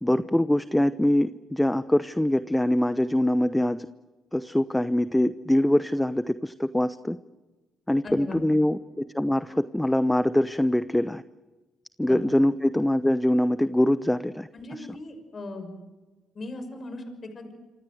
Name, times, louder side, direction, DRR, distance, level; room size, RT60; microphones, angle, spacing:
voice 1, 0.0-3.9 4.3-7.2 7.9-11.2 12.0-14.5 14.8-14.9, left 1 dB, 5° left, 13 dB, 0.8 m, -23 dB
voice 2, 8.0-8.4 12.1-12.2 14.5-15.7 16.3-17.6, left 2 dB, 40° left, 8 dB, 6.0 m, -38 dB
27.0 x 26.5 x 7.9 m, 1.2 s
cardioid pair, 90°, 0 cm